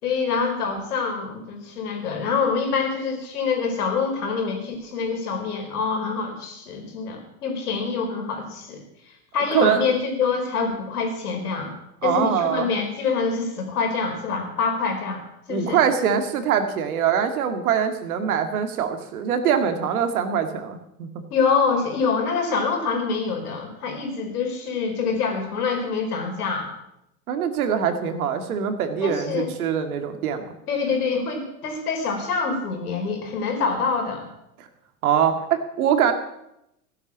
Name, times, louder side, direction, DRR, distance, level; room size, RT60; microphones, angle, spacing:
voice 1, 0.0-8.8 9.3-11.7 12.0-15.2 15.5-15.8 21.3-26.7 29.0-29.5 30.7-34.3, left 5 dB, 70° left, 4 dB, 4.5 m, -25 dB
voice 2, 12.0-12.7 15.5-21.2 27.3-30.5 34.6-34.7 35.0-36.1, right 8 dB, 65° right, 8 dB, 2.2 m, -23 dB
15.5 x 11.0 x 7.3 m, 0.83 s
hypercardioid pair, 95°, 47 cm